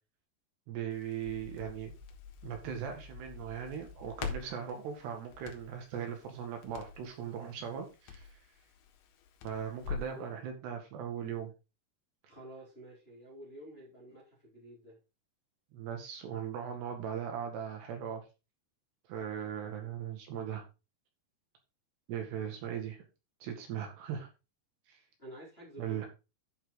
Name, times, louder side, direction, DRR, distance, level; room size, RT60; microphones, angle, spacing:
voice 1, 0.7-1.9 2.4-8.3 9.4-11.5 15.7-18.2 19.1-20.6 22.1-23.0 23.4-24.3 24.9-25.0 25.8-26.1, right 8 dB, 70° right, 3.9 m, -39 dB
Crackle, 0.9-10.2, left 6 dB, 85° left, 3.8 m, -46 dB
voice 2, 12.3-15.0 25.2-26.1, right 1 dB, 15° left, 3.1 m, -50 dB
11.5 x 5.8 x 4.0 m
omnidirectional pair, 5.1 m